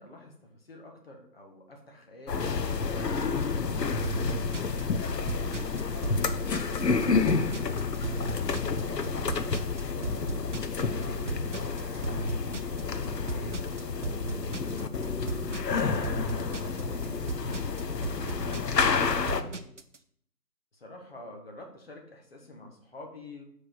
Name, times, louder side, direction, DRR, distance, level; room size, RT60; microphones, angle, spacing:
voice 1, 0.0-4.2 20.7-23.4, left 1 dB, 40° left, 1 dB, 1.3 m, -47 dB
sound 1, 2.3-19.4, left 4 dB, 90° left, 0.8 m, -30 dB
sound 2, 4.0-20.0, right 3 dB, 50° right, 0.5 m, -37 dB
voice 2, 5.2-10.1 10.7-14.7 15.5-19.7, right 1 dB, 15° left, -16 dB, 2.8 m, -50 dB
4.9 x 4.8 x 6.0 m, 0.67 s
figure-of-eight pair, 160°, 48 cm